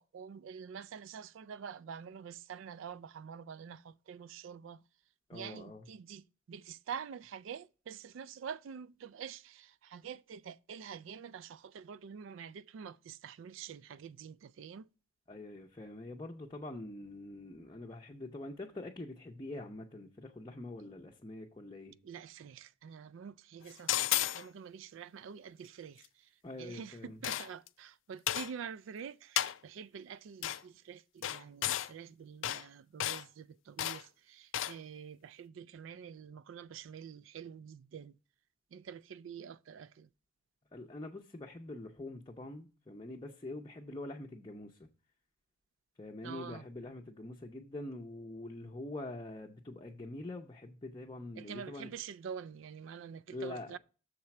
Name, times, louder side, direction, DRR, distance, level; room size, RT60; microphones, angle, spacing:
voice 1, 0.0-4.8 5.3-14.9 20.8-20.9 22.0-26.3 26.6-38.2 38.7-40.1 46.2-46.7 51.4-53.8, right 7 dB, 75° right, 0.3 m, -47 dB
voice 2, 5.3-5.9 15.3-22.0 26.4-27.2 40.7-44.9 46.0-51.9 53.3-53.8, left 2 dB, 25° left, 0.6 m, -45 dB
sound 1, 23.9-24.4 27.2-27.7 28.3-28.5 29.4-29.6 30.4-30.6 31.2-31.9 32.4-32.6 33.0-33.2 33.8-34.0 34.5-34.8, left 13 dB, 80° left, 0.4 m, -32 dB
6.6 x 4.3 x 5.8 m
head